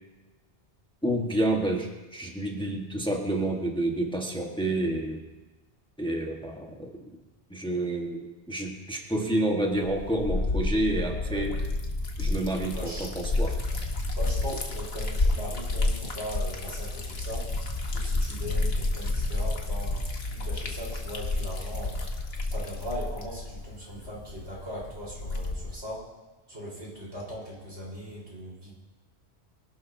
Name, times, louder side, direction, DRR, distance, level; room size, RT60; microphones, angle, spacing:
voice 1, 1.0-5.2 6.0-6.9 7.5-11.5 12.2-13.5, right 1 dB, 5° left, 0 dB, 1.4 m, -29 dB
Liquid, 9.7-25.8, left 2 dB, 65° left, 1.6 m, -30 dB
voice 2, 12.7-13.1 14.1-17.5 17.8-22.1 22.5-26.1 26.5-28.7, equal, 85° right, -5 dB, 4.7 m, -39 dB
23.5 x 12.0 x 2.8 m, 1.1 s
omnidirectional pair, 1.1 m